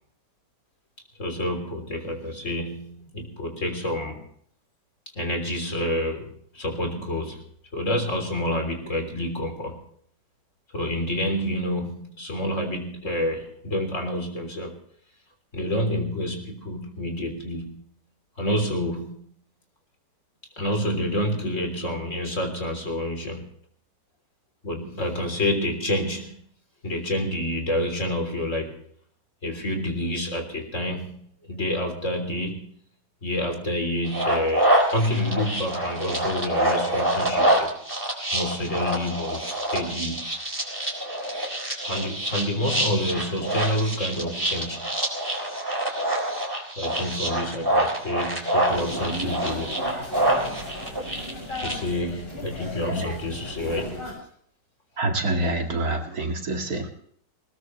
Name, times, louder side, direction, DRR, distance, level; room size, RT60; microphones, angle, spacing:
voice 1, 1.2-4.2 5.2-7.4 7.7-9.8 10.7-14.8 15.5-17.8 18.4-19.2 20.6-23.5 24.6-26.4 26.8-28.8 29.4-32.7 33.2-37.7 38.3-40.3 41.8-44.9 46.8-49.9 51.6-54.0, left 1 dB, 45° left, 3.8 m, -28 dB
sound 1, 34.0-51.7, right 1 dB, 10° right, 3.7 m, -26 dB
sound 2, 48.7-54.1, left 1 dB, 80° left, 7.8 m, -36 dB
voice 2, 55.0-56.9, right 2 dB, 55° right, 2.5 m, -26 dB
20.5 x 19.5 x 3.2 m
omnidirectional pair, 1.9 m